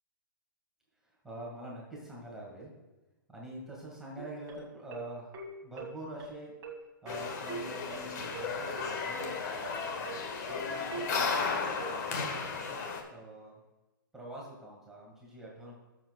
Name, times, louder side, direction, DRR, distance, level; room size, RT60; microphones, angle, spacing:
voice 1, 1.0-2.7 3.3-5.3 5.6-6.5 7.0-10.1 10.5-13.6 14.1-15.7, right 1 dB, 5° right, -4 dB, 1.9 m, -45 dB
sound 1, 4.2-11.9, right 3 dB, 25° right, 2.1 m, -43 dB
sound 2, 7.1-13.0, left 5 dB, 50° left, 1.5 m, -34 dB
19.0 x 7.2 x 2.3 m, 1.1 s
hypercardioid pair, 145°, 12 cm